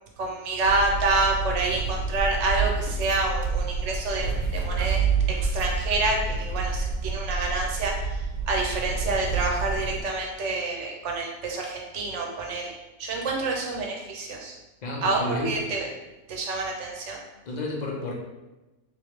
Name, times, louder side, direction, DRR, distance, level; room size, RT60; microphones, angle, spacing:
voice 1, 0.2-7.9 8.5-12.7 13.0-14.5 15.0-15.9 16.3-17.2, right 3 dB, 65° right, 0 dB, 1.0 m, -28 dB
sound 1, 0.6-10.0, right 4 dB, 90° right, 1.1 m, -28 dB
voice 2, 14.8-15.8 17.4-18.1, left 1 dB, 45° left, -2 dB, 0.7 m, -31 dB
3.4 x 3.1 x 3.1 m, 1.0 s
omnidirectional pair, 1.4 m